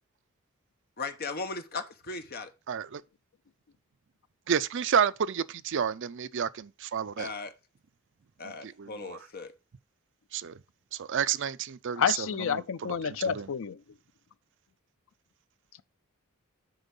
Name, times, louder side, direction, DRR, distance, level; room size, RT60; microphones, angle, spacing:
voice 1, 1.0-2.5 7.2-7.5 8.4-9.5, left 4 dB, 45° left, 1.0 m, -37 dB
voice 2, 2.7-3.0 4.5-7.3 8.6-9.2 10.3-10.5 11.0-12.3 13.0-13.5, right 7 dB, 60° right, 0.5 m, -30 dB
voice 3, 12.0-13.8, left 7 dB, 65° left, 0.5 m, -29 dB
7.9 x 5.3 x 5.3 m
head